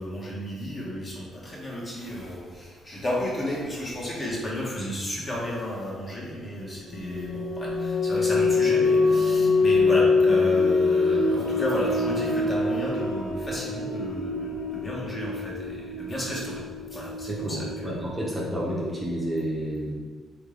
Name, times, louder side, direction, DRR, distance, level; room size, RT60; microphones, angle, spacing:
voice 1, 0.0-17.9, equal, 35° left, -5 dB, 1.3 m, -32 dB
sound 1, 6.9-19.4, left 3 dB, 85° left, 1.0 m, -25 dB
voice 2, 17.3-19.9, right 1 dB, 10° right, -4 dB, 0.8 m, -30 dB
3.8 x 3.3 x 3.3 m, 1.4 s
cardioid pair, 90°, 0 cm